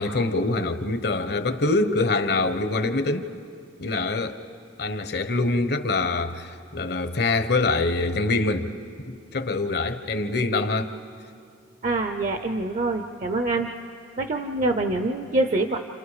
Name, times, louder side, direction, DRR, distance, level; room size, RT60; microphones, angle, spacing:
voice 1, 0.0-3.3 3.8-4.4 4.8-8.7 9.1-10.9, left 3 dB, 60° left, 9 dB, 1.1 m, -24 dB
voice 2, 11.8-13.7 14.2-15.8, right 2 dB, 40° right, 6 dB, 0.7 m, -25 dB
30.0 x 27.5 x 5.0 m, 2.4 s
head